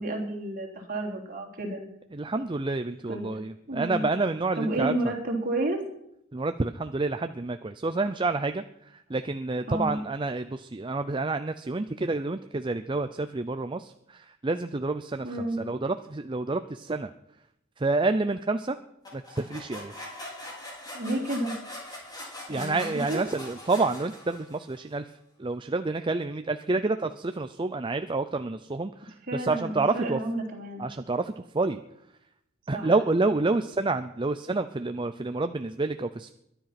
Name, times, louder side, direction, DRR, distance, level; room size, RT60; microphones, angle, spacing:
voice 1, 0.0-1.8 3.1-3.2 3.7-4.0 4.6-5.8 9.7-10.0 15.2-15.6 20.9-21.5 22.5-23.2 29.3-30.8 32.7-32.9, right 1 dB, 45° right, 1 dB, 3.5 m, -31 dB
voice 2, 2.1-5.1 6.3-8.6 8.9-17.1 17.8-18.8 19.1-19.9 22.5-25.1 25.4-30.2 30.8-31.8 32.7-36.3, right 3 dB, 25° right, 9 dB, 0.5 m, -28 dB
sound 1, 19.0-24.7, left 1 dB, 20° left, 5.1 m, -42 dB
22.0 x 10.5 x 5.9 m, 0.79 s
head